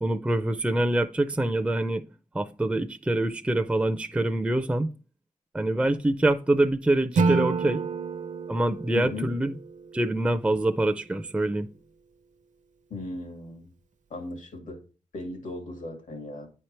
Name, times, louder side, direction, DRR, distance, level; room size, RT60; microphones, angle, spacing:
voice 1, 0.0-2.0 2.3-4.9 5.5-7.8 8.5-9.5 9.9-11.7, right 1 dB, 10° right, 0.4 m, -25 dB
Acoustic guitar / Strum, 7.2-10.3, right 4 dB, 70° right, 0.6 m, -29 dB
voice 2, 8.9-9.3 12.9-13.7 14.1-14.8 15.1-16.5, left 2 dB, 85° left, 2.4 m, -37 dB
9.4 x 4.4 x 3.2 m
wide cardioid pair, 145°, 13 cm